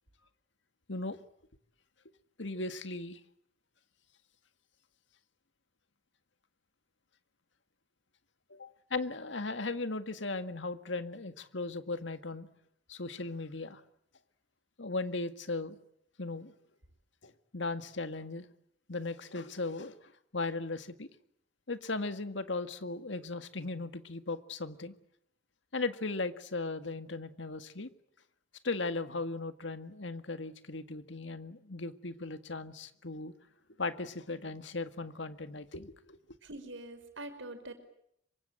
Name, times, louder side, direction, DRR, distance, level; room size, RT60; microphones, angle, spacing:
voice 1, 2.4-3.2 8.5-12.5 12.9-13.8 14.8-15.8 16.2-16.5 17.2-18.5 18.9-21.1 21.7-24.9 25.7-27.9 28.6-33.3 33.8-36.2, left 3 dB, 75° left, 10 dB, 1.9 m, -37 dB
voice 2, 36.4-37.7, right 2 dB, 85° right, 8 dB, 5.2 m, -44 dB
26.0 x 24.5 x 8.9 m, 0.70 s
head